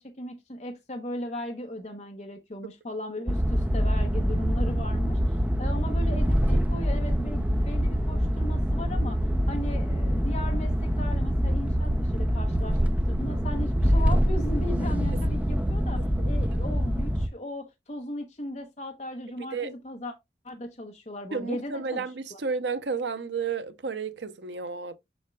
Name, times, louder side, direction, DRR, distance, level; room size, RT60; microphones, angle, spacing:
voice 1, 0.0-9.2 9.5-12.8 13.1-20.1 20.4-22.4, left 1 dB, 40° left, 0.9 m, -37 dB
sound 1, 3.3-17.3, equal, 10° right, 0.5 m, -25 dB
voice 2, 16.2-16.6 19.5-19.7 21.3-25.0, right 5 dB, 80° right, 0.7 m, -32 dB
7.1 x 5.9 x 2.3 m
head